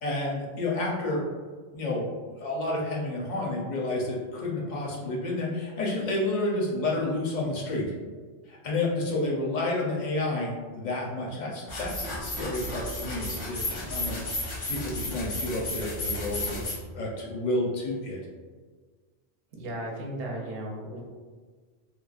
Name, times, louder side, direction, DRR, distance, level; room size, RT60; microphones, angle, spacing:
voice 1, 0.0-1.2 1.7-7.8 8.5-18.2, left 2 dB, 50° left, -3 dB, 0.6 m, -30 dB
sound 1, 11.7-16.7, left 1 dB, 90° left, 1.2 m, -33 dB
voice 2, 19.5-21.0, right 1 dB, 65° right, -2 dB, 0.7 m, -35 dB
3.0 x 2.1 x 2.3 m, 1.5 s
omnidirectional pair, 1.2 m